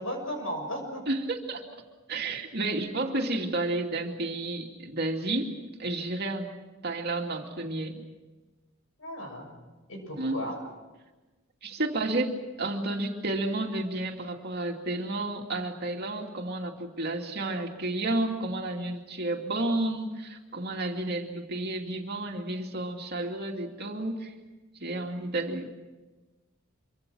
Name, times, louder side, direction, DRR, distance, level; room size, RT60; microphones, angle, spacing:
voice 1, 0.0-1.1 9.0-9.6 9.9-10.6, equal, 75° left, 5 dB, 6.9 m, -35 dB
voice 2, 1.1-1.8 2.1-6.5 6.8-8.0 10.2-10.4 11.6-24.3 24.8-25.7, right 2 dB, 55° right, 2 dB, 2.6 m, -31 dB
26.0 x 24.5 x 6.3 m, 1.2 s
head